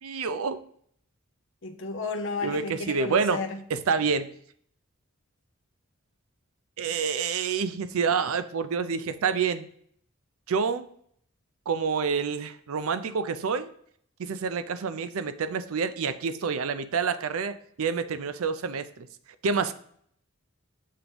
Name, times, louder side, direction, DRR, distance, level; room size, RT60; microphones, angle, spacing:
voice 1, 0.0-0.6 2.4-3.4 3.7-4.3 6.8-9.7 10.5-10.9 11.7-13.7 14.2-19.1 19.4-19.7, right 5 dB, 80° right, 12 dB, 0.5 m, -28 dB
voice 2, 1.6-3.6, left 4 dB, 55° left, 4 dB, 0.6 m, -33 dB
6.6 x 3.0 x 5.2 m, 0.64 s
head